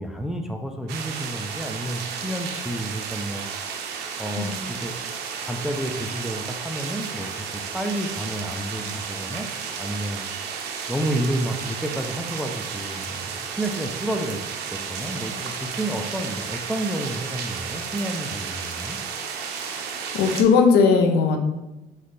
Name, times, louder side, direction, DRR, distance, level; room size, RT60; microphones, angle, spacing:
voice 1, 0.0-3.5 4.2-4.9 5.4-9.5 9.8-10.2 10.9-14.4 14.7-19.0, right 1 dB, ahead, 4 dB, 0.4 m, -30 dB
sound 1, 0.9-20.4, right 6 dB, 80° right, 0.6 m, -33 dB
voice 2, 20.1-21.4, left 5 dB, 75° left, 5 dB, 0.6 m, -18 dB
3.2 x 3.2 x 4.0 m, 1.0 s
cardioid pair, 110°, 17 cm